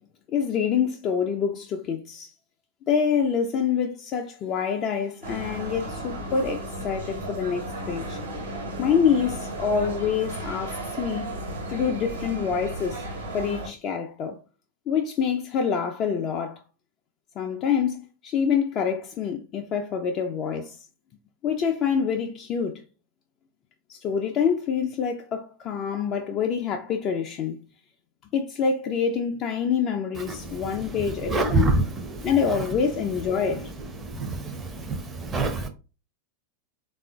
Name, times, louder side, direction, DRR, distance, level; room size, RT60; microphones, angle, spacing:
voice 1, 0.3-2.3 2.9-8.2 8.8-11.3 11.7-13.0 13.3-14.4 14.9-16.6 17.4-20.8 21.4-22.8 23.9-27.6 28.3-31.8 32.2-33.7, left 7 dB, 35° left, 0.4 m, -26 dB
sound 1, 5.2-13.7, right 1 dB, 65° right, 1.2 m, -34 dB
voice 2, 31.3-31.8 34.2-35.7, right 2 dB, 20° right, 0.6 m, -25 dB
3.5 x 2.4 x 2.3 m
figure-of-eight pair, 90°, 0 cm